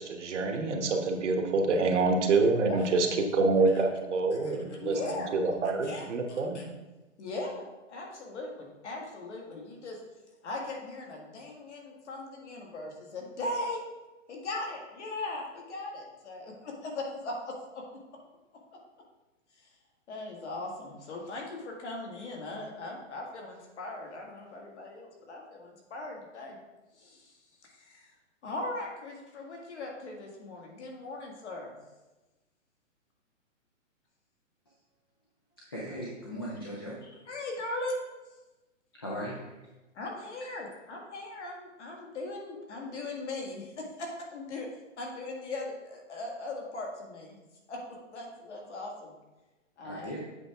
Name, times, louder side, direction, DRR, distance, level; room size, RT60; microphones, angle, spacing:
voice 1, 0.0-3.1 3.3-6.7, right 3 dB, 65° right, 4 dB, 1.2 m, -27 dB
voice 2, 4.4-5.3 5.8-6.6 7.2-10.0 10.4-13.9 14.3-17.8 20.1-26.6 26.9-27.4 27.7-28.1 28.4-31.8 37.3-38.0 39.9-44.7 45.0-47.4 47.7-49.1 49.8-50.2, left 2 dB, 60° left, 0 dB, 1.8 m, -39 dB
voice 3, 35.7-37.1 39.0-39.4 49.8-50.2, equal, 20° left, -6 dB, 0.4 m, -38 dB
8.0 x 4.8 x 3.4 m, 1.1 s
hypercardioid pair, 165°, 38 cm